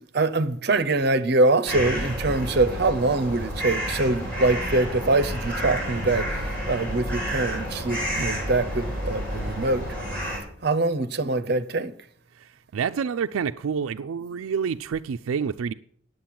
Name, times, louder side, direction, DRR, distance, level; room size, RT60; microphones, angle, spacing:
voice 1, 0.1-9.9 10.6-11.9, right 2 dB, 50° right, 0.7 m, -24 dB
sound 1, 1.7-10.4, equal, 5° left, 4.8 m, -30 dB
voice 2, 12.4-15.7, right 6 dB, 85° right, 0.4 m, -28 dB
10.0 x 7.8 x 7.5 m
head